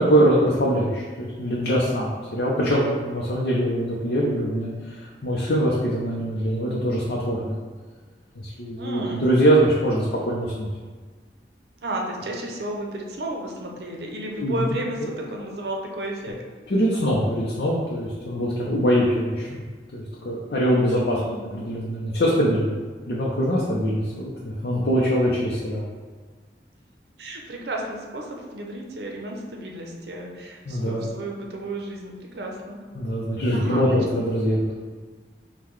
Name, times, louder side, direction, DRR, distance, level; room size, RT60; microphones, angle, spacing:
voice 1, 0.0-7.6 8.4-10.7 14.4-15.1 16.7-19.6 19.9-21.2 21.5-22.7 23.1-25.8 30.7-31.1 32.9-34.6, equal, 65° left, -5 dB, 0.5 m, -23 dB
voice 2, 8.8-9.3 11.8-16.4 20.9-21.5 27.2-32.8 33.5-34.0, right 1 dB, 70° right, 0 dB, 0.6 m, -33 dB
5.6 x 2.2 x 3.1 m, 1.4 s
head